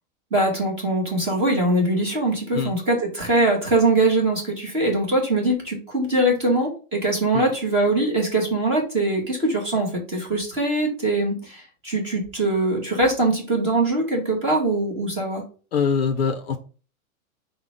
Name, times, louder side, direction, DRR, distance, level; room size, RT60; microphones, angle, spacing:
voice 1, 0.3-15.4, right 2 dB, 15° right, -2 dB, 0.8 m, -22 dB
voice 2, 15.7-16.6, left 5 dB, 45° left, 6 dB, 0.5 m, -23 dB
5.4 x 2.1 x 4.8 m, 0.38 s
supercardioid pair, 180°, 43 cm